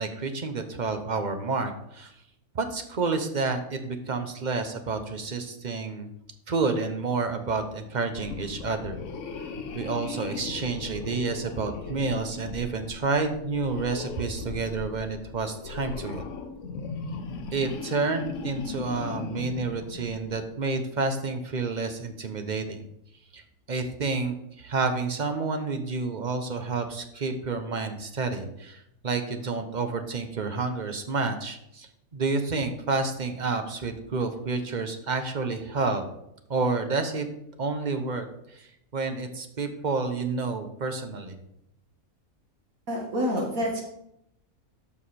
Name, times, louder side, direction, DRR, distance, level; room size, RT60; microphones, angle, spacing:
voice 1, 0.0-2.1 2.5-6.1 6.5-9.0 9.7-16.2 17.5-22.9 23.3-23.4 23.7-36.0 36.5-37.3 37.6-38.3 38.5-41.4, right 4 dB, 35° right, 7 dB, 0.8 m, -29 dB
sound 1, 8.1-20.5, left 4 dB, 60° left, 1.1 m, -38 dB
voice 2, 42.9-43.8, equal, 65° right, -1 dB, 2.2 m, -27 dB
12.5 x 4.8 x 4.2 m, 0.79 s
omnidirectional pair, 1.6 m